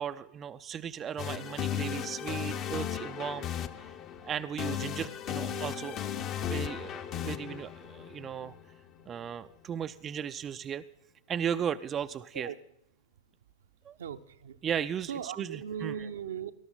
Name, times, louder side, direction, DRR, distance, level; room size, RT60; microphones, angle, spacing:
voice 1, 0.0-3.5 3.8-3.9 4.2-6.0 6.4-8.5 9.1-10.8 11.3-12.5 13.9-14.0 14.6-16.1, right 8 dB, 25° right, 10 dB, 0.4 m, -36 dB
sound 1, 1.2-9.1, left 9 dB, 35° left, 0.8 m, -36 dB
voice 2, 14.0-14.6 15.1-16.5, right 8 dB, 65° right, 10 dB, 0.7 m, -38 dB
19.5 x 12.0 x 3.9 m, 0.78 s
figure-of-eight pair, 90°, 0 cm